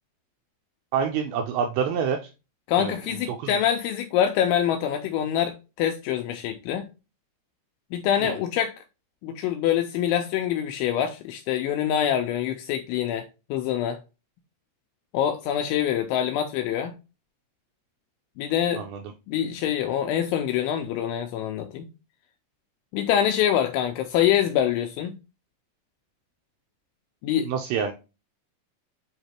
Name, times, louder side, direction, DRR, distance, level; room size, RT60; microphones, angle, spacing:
voice 1, 0.9-2.2 2.8-3.0 3.3-3.5 8.2-8.4 18.8-19.0 27.4-27.9, right 7 dB, 90° right, 2.5 m, -27 dB
voice 2, 2.7-6.9 7.9-8.7 9.2-14.0 15.1-16.9 18.4-18.8 19.3-21.8 22.9-25.2 27.2-27.5, left 10 dB, 85° left, 2.7 m, -25 dB
7.9 x 2.9 x 4.3 m
omnidirectional pair, 5.9 m